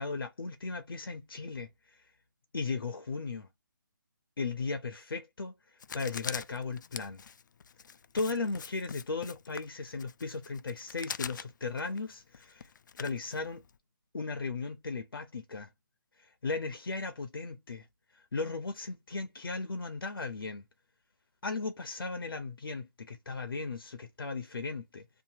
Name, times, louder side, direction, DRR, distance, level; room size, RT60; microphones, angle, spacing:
voice 1, 0.0-2.1 2.5-3.5 4.4-7.2 8.1-12.7 13.0-13.6 14.1-15.7 16.2-17.9 18.1-20.6 21.4-25.2, left 4 dB, 85° left, 0.7 m, -36 dB
Writing, 5.8-13.8, left 7 dB, 60° left, 0.4 m, -44 dB
2.9 x 2.5 x 2.6 m
hypercardioid pair, 160°, 11 cm